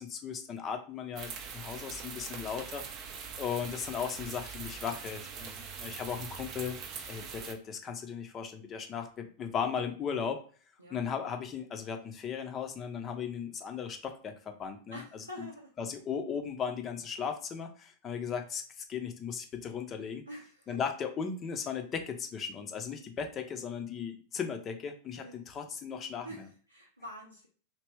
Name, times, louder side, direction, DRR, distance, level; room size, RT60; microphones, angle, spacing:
voice 1, 0.0-2.9 3.4-6.8 7.1-10.5 10.9-15.5 15.8-20.2 20.7-26.5, left 7 dB, 25° left, 5 dB, 0.6 m, -37 dB
sound 1, 1.2-7.5, right 6 dB, 35° right, 0.6 m, -43 dB
voice 2, 14.9-15.7 20.3-20.8 25.2-25.4 26.2-27.5, equal, 90° right, -4 dB, 0.6 m, -46 dB
3.1 x 2.9 x 3.1 m, 0.42 s
figure-of-eight pair, 90°, 0 cm